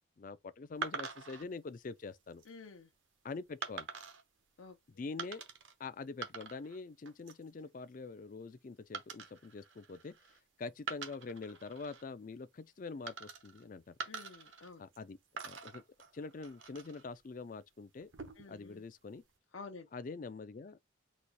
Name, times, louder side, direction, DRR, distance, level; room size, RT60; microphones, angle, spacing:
voice 1, 0.2-2.4 3.2-3.9 5.0-5.4 5.8-10.1 10.6-13.9 14.8-15.2 15.4-15.8 16.1-18.1 18.5-19.2 19.9-20.8, left 4 dB, 40° left, 0.4 m, -45 dB
sound 1, 0.8-1.4 2.1-2.5 3.6-4.2 5.2-5.7 6.0-6.8 7.1-7.5 8.9-10.4 10.8-12.0 13.1-13.6 14.0-15.0 15.4-17.0 18.0-18.6, right 5 dB, 70° right, 1.0 m, -45 dB
voice 2, 2.5-2.9 4.6-4.8 14.1-14.8 18.4-18.8 19.5-19.9, left 4 dB, 90° left, 0.7 m, -50 dB
4.1 x 2.4 x 4.6 m
head